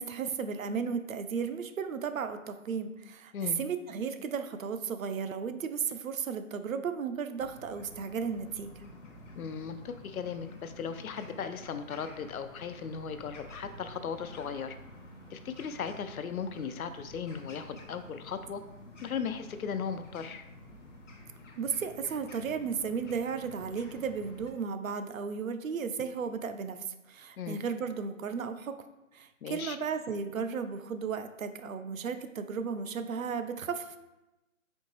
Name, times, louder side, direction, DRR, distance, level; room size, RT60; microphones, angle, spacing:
voice 1, 0.0-8.8 21.6-28.8 29.1-34.0, right 6 dB, 70° right, 9 dB, 0.5 m, -34 dB
sound 1, 7.4-24.5, left 1 dB, 60° left, 0.9 m, -50 dB
voice 2, 9.3-14.8 15.3-18.6 19.0-20.4 27.4-27.6 29.4-29.8, left 6 dB, 80° left, 10 dB, 0.5 m, -37 dB
4.3 x 2.8 x 3.1 m, 0.98 s
hypercardioid pair, 170°, 42 cm